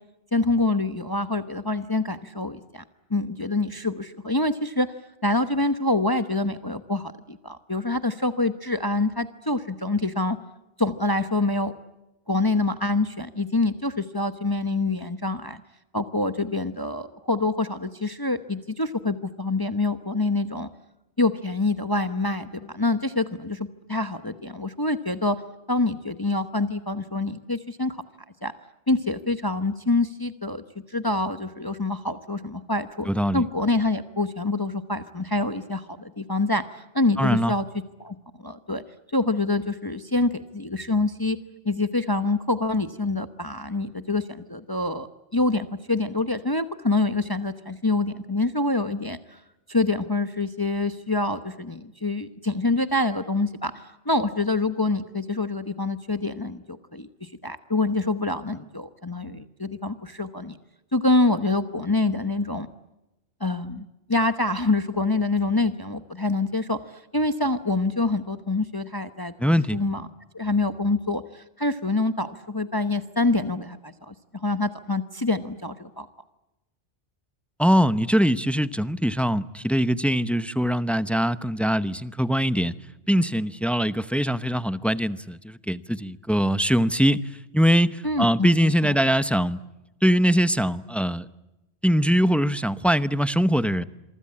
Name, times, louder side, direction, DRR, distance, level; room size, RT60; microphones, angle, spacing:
voice 1, 0.3-2.8 3.1-4.9 5.2-10.4 10.8-11.7 12.3-15.6 15.9-20.7 21.2-23.6 23.9-25.4 25.7-28.0 28.4-28.5 28.9-30.6 30.9-33.1 33.3-37.6 38.0-38.8 39.1-41.4 41.6-49.4 49.7-60.6 60.9-62.7 63.4-70.1 70.3-76.1 88.0-88.9, left 2 dB, 20° left, 10 dB, 1.0 m, -26 dB
voice 2, 33.1-33.4 37.2-37.5 69.4-69.8 77.6-82.7 83.1-87.3 87.5-89.6 90.0-91.3 91.8-93.8, equal, ahead, 13 dB, 0.7 m, -22 dB
27.0 x 24.0 x 8.6 m, 0.98 s
omnidirectional pair, 1.2 m